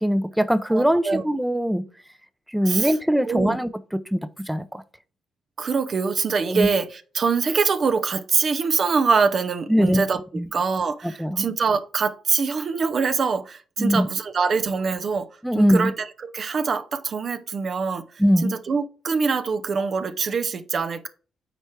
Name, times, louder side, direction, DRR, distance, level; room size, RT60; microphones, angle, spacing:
voice 1, 0.0-1.8 2.5-3.7 4.1-4.8 6.5-6.7 9.7-10.0 10.3-10.5 11.2-11.4 13.8-14.1 15.4-15.9 18.2-18.5, equal, 5° right, 0.7 m, -21 dB
voice 2, 0.7-1.3 2.6-2.9 3.2-3.6 5.6-10.2 10.5-18.1 18.4-21.1, right 5 dB, 50° right, 0.7 m, -24 dB
8.0 x 4.4 x 4.6 m
hypercardioid pair, 50°, 0 cm